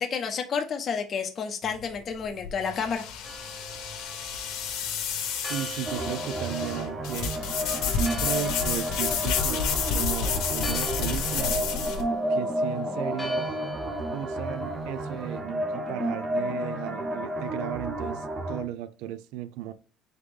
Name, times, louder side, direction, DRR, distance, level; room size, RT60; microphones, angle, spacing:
voice 1, 0.0-3.0, left 6 dB, 35° left, 4 dB, 0.6 m, -30 dB
sound 1, 1.6-12.0, left 6 dB, 70° left, 0.9 m, -30 dB
Church bell, 3.2-15.4, right 1 dB, 5° left, 0.9 m, -44 dB
voice 2, 5.4-7.3 7.8-9.6 9.9-11.6 12.3-13.5 14.1-19.7, right 12 dB, 85° right, 14 dB, 0.3 m, -35 dB
sound 2, 5.9-18.6, right 1 dB, 25° right, 0.5 m, -31 dB
4.0 x 3.2 x 3.4 m, 0.40 s
cardioid pair, 135°, 0 cm